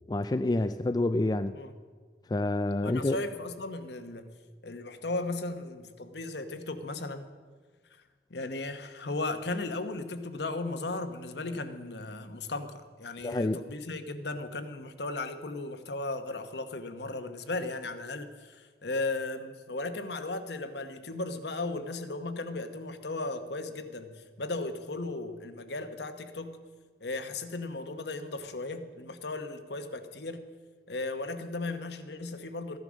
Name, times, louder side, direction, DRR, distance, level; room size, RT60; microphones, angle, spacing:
voice 1, 0.1-1.5 2.3-3.2 13.2-13.6, left 2 dB, 20° left, 10 dB, 0.3 m, -28 dB
voice 2, 2.8-4.3 4.6-7.2 8.3-26.6 27.0-30.5 30.9-32.8, left 2 dB, 65° left, 9 dB, 1.0 m, -36 dB
15.0 x 10.5 x 6.3 m, 1.5 s
head